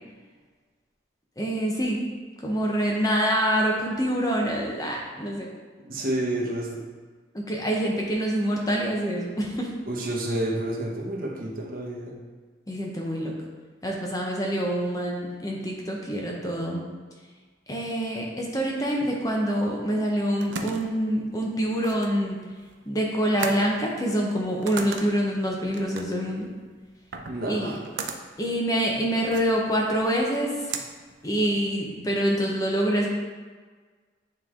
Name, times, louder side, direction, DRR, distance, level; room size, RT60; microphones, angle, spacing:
voice 1, 1.4-2.0 2.4-5.5 7.3-9.8 12.7-13.3 13.8-16.9 17.7-22.4 22.9-26.5 27.5-27.7 28.4-30.5 31.2-33.1, equal, 20° left, -1 dB, 0.8 m, -26 dB
voice 2, 5.8-6.8 9.9-12.1 27.2-27.8, right 1 dB, 50° right, -2 dB, 1.1 m, -29 dB
sound 1, 20.0-31.9, right 5 dB, 85° right, 0.5 m, -39 dB
9.1 x 3.2 x 3.7 m, 1.5 s
head